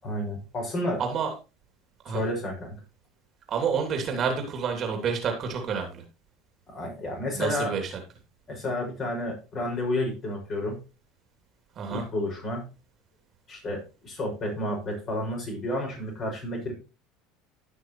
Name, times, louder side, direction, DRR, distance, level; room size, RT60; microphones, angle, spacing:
voice 1, 0.0-1.0 2.1-2.8 6.7-7.8 8.5-10.8 11.9-12.7 13.5-16.7, left 1 dB, 40° left, 0 dB, 5.9 m, -31 dB
voice 2, 1.0-1.3 2.0-2.2 3.5-6.0 7.3-7.9 11.7-12.1, right 6 dB, 40° right, 3 dB, 2.9 m, -29 dB
16.0 x 6.1 x 3.1 m, 0.31 s
figure-of-eight pair, 70°, 0 cm